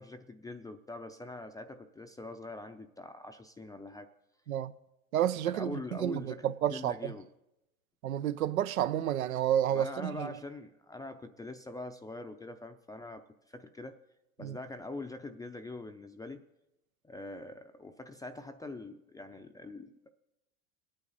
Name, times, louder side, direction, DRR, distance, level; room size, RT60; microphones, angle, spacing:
voice 1, 0.0-4.1 5.5-7.3 9.7-14.0 14.4-16.4 17.0-20.1, left 2 dB, 10° left, 0.5 m, -44 dB
voice 2, 5.1-7.1 8.0-10.3 14.4-14.6, right 11 dB, 85° right, 0.7 m, -30 dB
25.0 x 9.0 x 4.1 m
hypercardioid pair, 100°, 41 cm